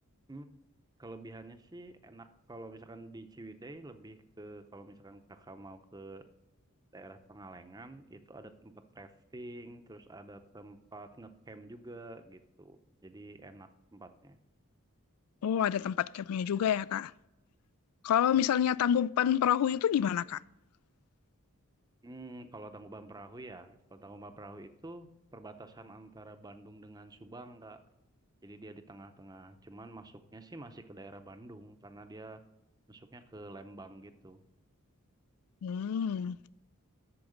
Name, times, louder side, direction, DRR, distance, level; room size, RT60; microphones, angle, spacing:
voice 1, 1.0-6.3 6.9-14.4 22.0-27.8 28.4-32.4 32.9-34.4, right 2 dB, 15° right, 0.6 m, -48 dB
voice 2, 15.4-17.1 18.0-20.4 35.6-36.4, left 9 dB, 85° left, 0.3 m, -28 dB
8.6 x 7.0 x 6.5 m
head